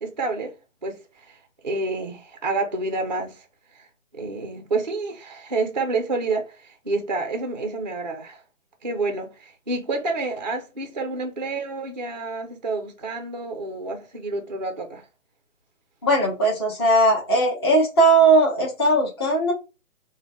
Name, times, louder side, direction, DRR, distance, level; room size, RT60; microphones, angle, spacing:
voice 1, 0.0-0.5 0.8-3.5 3.7-3.9 4.1-8.4 8.8-15.0, right 3 dB, 35° right, 0.4 m, -29 dB
voice 2, 16.0-19.5, right 2 dB, 20° left, 0.6 m, -18 dB
3.9 x 2.1 x 3.3 m
figure-of-eight pair, 140°, 43 cm